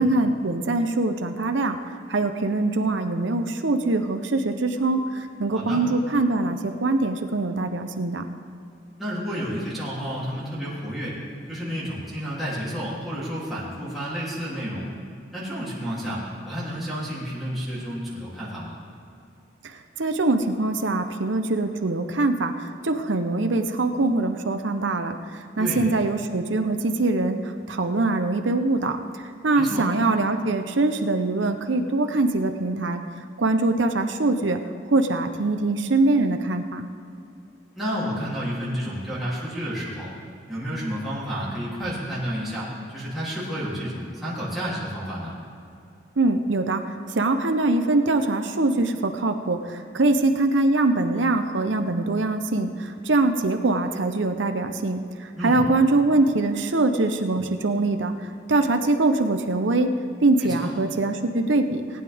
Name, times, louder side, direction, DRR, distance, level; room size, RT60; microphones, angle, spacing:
voice 1, 0.0-1.8 2.1-8.2 20.0-22.5 22.8-25.2 25.6-27.4 27.7-29.0 29.4-33.0 33.4-34.6 34.9-36.9 46.2-46.8 47.2-55.0 55.4-58.1 58.5-59.9 60.2-61.8, right 2 dB, 80° right, 6 dB, 0.8 m, -23 dB
voice 2, 9.0-11.2 11.5-14.8 15.3-18.8 25.6-25.8 29.5-29.8 37.7-40.1 40.5-45.3 55.4-55.6 60.4-60.7, equal, ahead, -10 dB, 3.0 m, -30 dB
19.5 x 9.5 x 3.6 m, 2.6 s
head